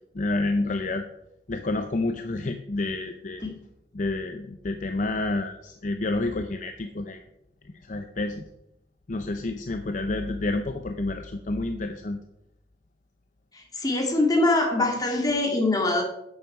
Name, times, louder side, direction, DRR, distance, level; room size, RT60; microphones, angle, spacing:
voice 1, 0.1-1.1 1.5-3.4 3.9-7.2 7.8-8.4 9.1-12.2, left 2 dB, 45° left, 7 dB, 0.6 m, -29 dB
voice 2, 13.5-16.0, left 2 dB, 20° left, 1 dB, 2.0 m, -23 dB
9.7 x 7.8 x 4.8 m, 0.83 s
head